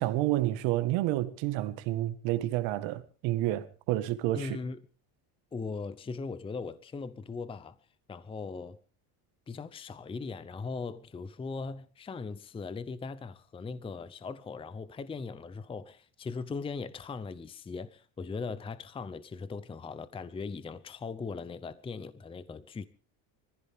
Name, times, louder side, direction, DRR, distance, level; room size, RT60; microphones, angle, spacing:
voice 1, 0.0-4.6, right 15 dB, 75° right, 1.9 m, -29 dB
voice 2, 4.3-4.8 5.5-7.8 8.1-8.8 9.5-22.9, left 4 dB, 10° left, 0.7 m, -39 dB
24.0 x 15.0 x 3.6 m
cardioid pair, 140°, 46 cm